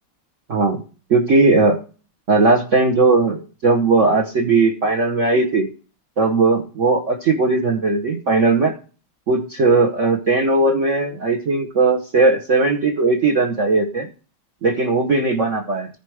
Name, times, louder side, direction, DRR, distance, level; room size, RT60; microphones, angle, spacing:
voice 1, 0.5-0.8 1.1-1.8 2.3-5.7 6.2-8.7 9.3-14.1 14.6-15.9, right 3 dB, 45° right, 3 dB, 1.2 m, -18 dB
14.5 x 5.1 x 4.8 m, 0.37 s
omnidirectional pair, 2.2 m